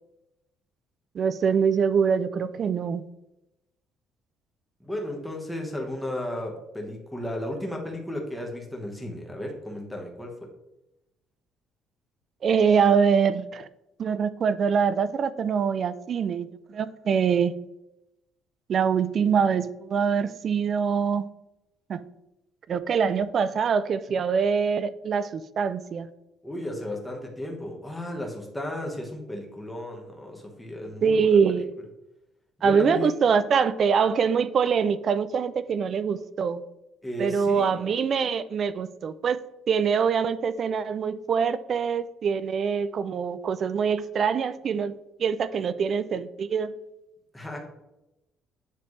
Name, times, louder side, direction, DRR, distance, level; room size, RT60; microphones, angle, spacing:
voice 1, 1.2-3.0 12.4-13.7 14.0-17.5 18.7-21.3 21.9-22.0 22.7-26.1 31.0-31.7 32.6-36.6 37.2-39.4 39.7-44.9 45.2-46.7, right 6 dB, 45° right, 15 dB, 0.3 m, -24 dB
voice 2, 4.8-10.5 26.4-31.6 32.6-33.2 37.0-37.8 47.3-47.6, left 1 dB, 5° left, 0 dB, 1.3 m, -34 dB
9.3 x 3.4 x 3.1 m, 0.92 s
cardioid pair, 105°, 0 cm